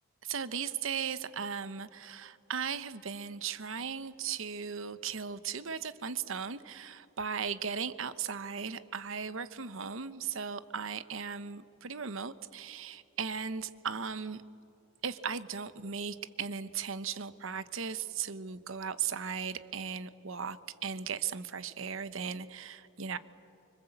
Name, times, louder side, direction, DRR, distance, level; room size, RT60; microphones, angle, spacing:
voice 1, 0.2-14.4 15.0-23.2, right 6 dB, 70° right, 13 dB, 0.9 m, -37 dB
25.0 x 25.0 x 8.0 m, 2.6 s
head